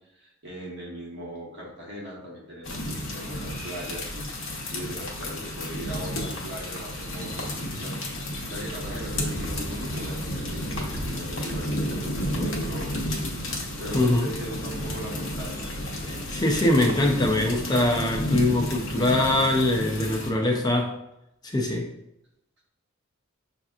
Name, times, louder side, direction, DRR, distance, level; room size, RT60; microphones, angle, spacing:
voice 1, 0.2-8.0 8.5-13.3 13.8-15.7, equal, 55° right, -3 dB, 1.2 m, -39 dB
sound 1, 2.6-20.3, equal, 65° left, 0.9 m, -32 dB
sound 2, 8.9-18.8, right 1 dB, 75° right, 0.8 m, -44 dB
voice 2, 13.9-14.3 16.1-20.9 21.4-21.9, left 1 dB, 20° left, 1 dB, 0.4 m, -23 dB
5.7 x 2.8 x 2.4 m, 0.83 s
head